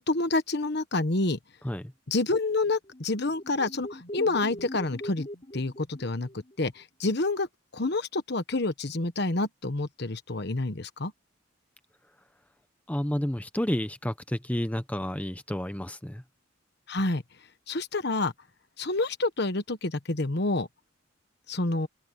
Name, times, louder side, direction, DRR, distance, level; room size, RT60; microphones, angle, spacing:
voice 1, 0.1-1.4 2.1-5.3 5.5-6.3 6.6-7.5 7.7-11.1 16.9-17.2 17.7-18.3 18.8-20.7 21.5-21.9, left 2 dB, 55° left, 1.3 m, -28 dB
sound 1, 2.7-6.7, left 1 dB, 30° left, 3.0 m, -42 dB
voice 2, 12.9-16.2, equal, 5° left, 0.8 m, -30 dB
open air
head